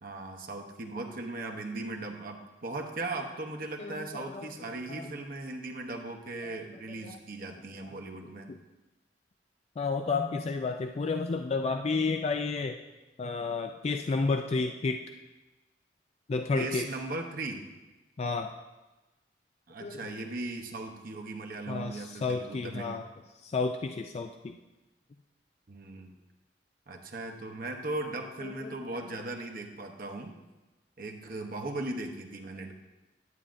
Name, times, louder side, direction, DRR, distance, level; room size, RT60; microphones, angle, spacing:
voice 1, 0.0-8.5 16.5-17.6 19.7-23.0 25.7-26.2 26.9-30.3 31.0-32.7, right 2 dB, 55° right, 3 dB, 0.8 m, -38 dB
voice 2, 3.8-4.5 4.9-5.0 6.4-6.6 7.0-7.2 8.5-8.6 9.8-12.8 13.2-15.0 16.3-16.9 18.2-18.5 19.8-20.0 21.7-23.0 23.4-24.6 28.4-28.8, left 4 dB, 35° left, 6 dB, 0.3 m, -31 dB
11.0 x 8.3 x 2.5 m, 1.1 s
head